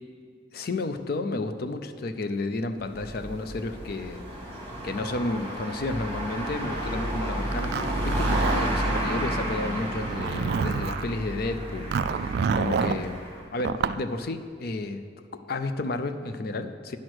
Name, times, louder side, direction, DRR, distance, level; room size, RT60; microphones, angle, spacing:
voice 1, 0.5-4.2 4.8-13.2 13.5-15.0 15.3-17.0, left 2 dB, 55° left, 9 dB, 0.5 m, -32 dB
sound 1, 2.8-13.4, right 1 dB, 15° left, 1.7 m, -31 dB
Zipper (clothing), 7.5-9.0 9.9-11.1 11.9-13.0 13.6-14.0, right 6 dB, 60° right, 0.3 m, -28 dB
9.7 x 6.3 x 6.2 m, 2.3 s
head